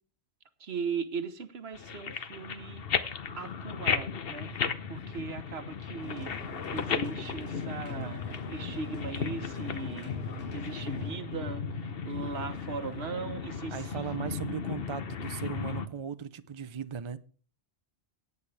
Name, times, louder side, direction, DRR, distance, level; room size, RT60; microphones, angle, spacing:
voice 1, 0.6-2.8 3.4-4.5 4.9-6.3 6.7-8.2 8.5-10.2 10.5-14.4, right 5 dB, 65° right, 1.4 m, -38 dB
sound 1, 1.7-15.9, left 6 dB, 55° left, 1.1 m, -35 dB
sound 2, 6.0-11.1, left 1 dB, 90° left, 6.3 m, -47 dB
voice 2, 13.7-17.2, right 7 dB, 40° right, 0.4 m, -38 dB
17.5 x 8.4 x 3.4 m
omnidirectional pair, 1.2 m